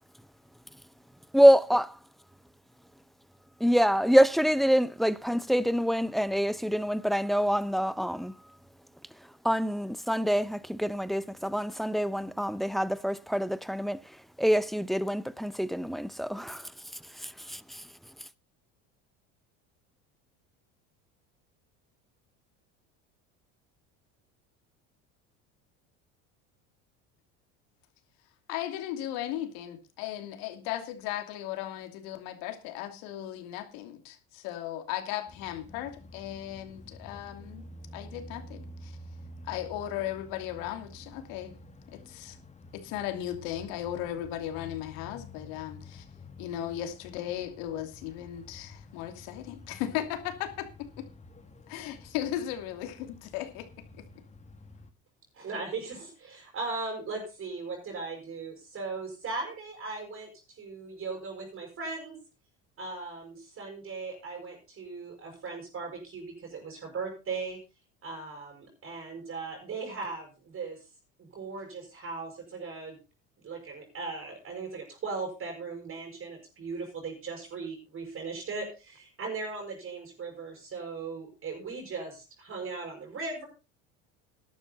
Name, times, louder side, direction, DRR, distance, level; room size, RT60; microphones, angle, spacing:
voice 1, 1.3-1.9 3.6-8.3 9.4-14.0 14.4-16.7 17.2-17.8, equal, ahead, 0.6 m, -25 dB
voice 2, 28.5-38.9 39.4-41.5 41.9-42.4 42.7-46.0 46.4-51.1 51.7-53.7 54.0-54.1, left 12 dB, 75° left, 2.7 m, -36 dB
sound 1, 35.3-54.9, left 2 dB, 20° left, 1.7 m, -49 dB
voice 3, 55.3-62.2 62.8-67.6 68.0-70.8 71.3-73.0 73.4-83.4, right 4 dB, 40° right, 6.1 m, -38 dB
12.5 x 11.5 x 4.1 m
supercardioid pair, 100°, 35 cm